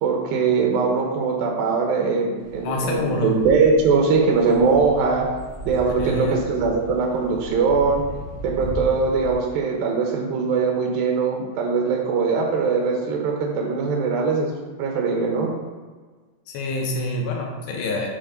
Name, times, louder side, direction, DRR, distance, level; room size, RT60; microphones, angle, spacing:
voice 1, 0.0-5.3 5.7-8.1 8.4-14.5 14.8-15.5, right 4 dB, 80° right, 0 dB, 2.8 m, -21 dB
sound 1, 2.4-9.3, right 1 dB, 40° right, 2.7 m, -36 dB
voice 2, 2.6-3.4 6.0-6.4 16.5-18.1, left 2 dB, 90° left, 0 dB, 3.0 m, -26 dB
10.5 x 3.6 x 5.3 m, 1.4 s
omnidirectional pair, 4.1 m